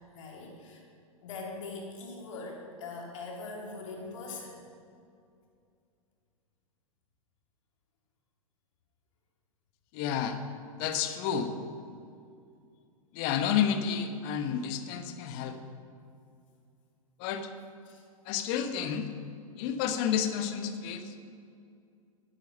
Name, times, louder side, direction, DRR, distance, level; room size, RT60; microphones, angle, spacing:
voice 1, 0.1-0.8 1.2-4.6 17.8-18.0, left 3 dB, 60° left, -1 dB, 3.3 m, -42 dB
voice 2, 9.9-10.4 10.8-11.5 13.1-15.6 17.2-17.5 18.3-19.1 19.6-21.2, left 8 dB, 45° left, 8 dB, 1.2 m, -30 dB
11.5 x 10.5 x 5.4 m, 2.4 s
hypercardioid pair, 105°, 18 cm